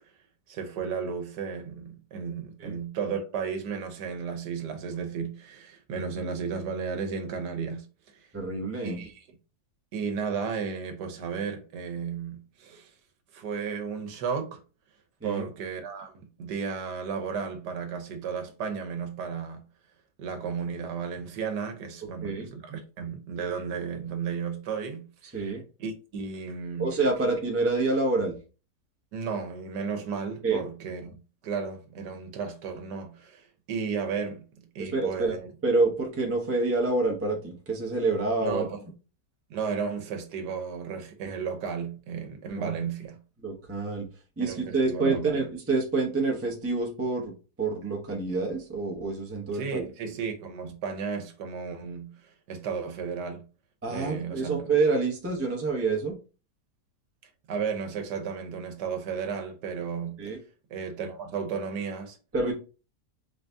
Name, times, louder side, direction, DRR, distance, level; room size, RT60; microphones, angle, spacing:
voice 1, 0.5-8.3 8.8-9.2 9.9-12.9 13.3-14.6 15.2-19.6 20.2-25.5 25.8-26.9 29.1-31.1 31.4-35.4 38.4-38.8 39.5-43.2 44.4-45.4 49.5-53.4 53.9-54.7 57.5-60.2 60.7-62.2, right 6 dB, 85° right, 1.4 m, -34 dB
voice 2, 8.3-9.0 15.2-15.4 22.2-22.5 25.3-25.6 26.8-28.4 30.4-30.6 34.8-35.4 35.6-38.6 42.6-42.7 43.4-44.1 44.4-49.8 53.8-56.1 60.2-60.4 62.3-62.5, right 3 dB, 15° right, 0.5 m, -27 dB
3.9 x 2.6 x 3.4 m
omnidirectional pair, 1.7 m